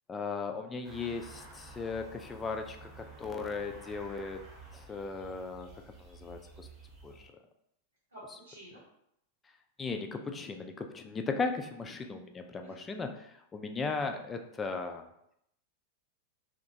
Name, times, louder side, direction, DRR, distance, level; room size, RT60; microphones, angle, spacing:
voice 1, 0.1-4.4 4.7-5.7 6.0-6.7 7.0-7.3 9.8-15.0, left 4 dB, 20° left, 5 dB, 0.3 m, -37 dB
sound 1, 0.8-7.3, right 3 dB, 30° right, 0.9 m, -51 dB
voice 2, 8.1-8.8 12.6-12.9 13.8-14.1, right 1 dB, 80° right, -11 dB, 0.9 m, -51 dB
2.8 x 2.3 x 2.6 m, 0.77 s
figure-of-eight pair, 90°, 0 cm